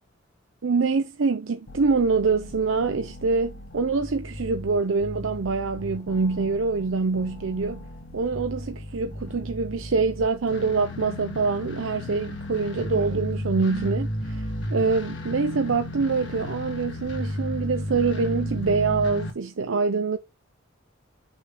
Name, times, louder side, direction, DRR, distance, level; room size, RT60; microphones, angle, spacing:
voice 1, 0.6-7.8 8.1-20.2, right 4 dB, 85° right, 0.6 m, -25 dB
sound 1, 1.7-19.3, equal, 65° left, 1.9 m, -34 dB
6.4 x 5.7 x 3.4 m
head